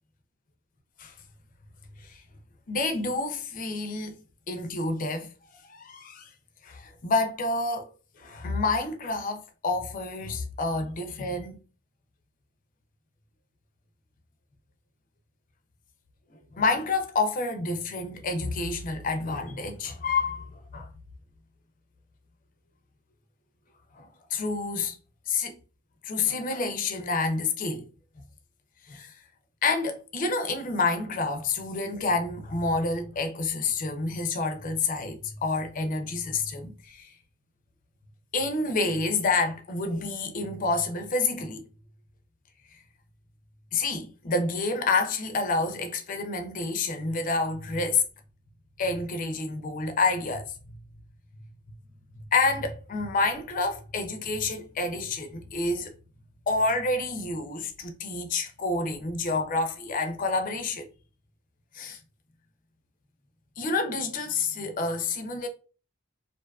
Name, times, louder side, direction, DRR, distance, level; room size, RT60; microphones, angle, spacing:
voice 1, 2.7-4.1 4.5-5.3 5.7-6.3 6.6-7.9 8.2-11.6 16.5-20.9 24.0-25.0 25.3-25.6 26.0-27.9 28.9-29.1 29.6-37.1 38.3-41.6 43.7-48.0 48.8-50.5 52.3-55.9 56.5-60.9 61.7-62.0 63.6-65.5, left 3 dB, 40° left, 0.4 m, -28 dB
2.5 x 2.3 x 2.3 m
head